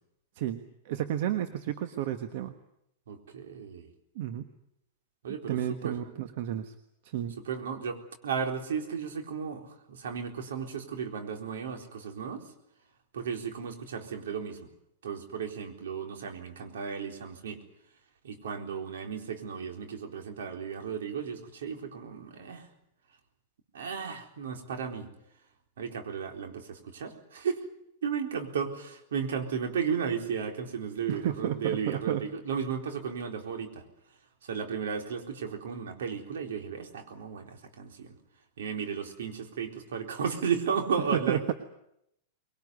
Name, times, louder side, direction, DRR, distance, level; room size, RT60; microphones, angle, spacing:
voice 1, 0.3-2.5 4.1-4.5 5.5-6.7 7.0-7.4 31.1-32.3 41.1-41.5, right 11 dB, 60° right, 9 dB, 1.4 m, -32 dB
voice 2, 3.1-3.9 5.2-5.6 5.8-5.9 7.5-12.4 13.1-14.7 15.0-17.6 18.2-22.7 23.7-25.1 25.8-27.6 28.0-33.8 34.4-38.2 38.6-41.5, right 6 dB, 80° right, 5 dB, 4.1 m, -34 dB
22.0 x 19.0 x 9.6 m, 0.78 s
hypercardioid pair, 125°, 0 cm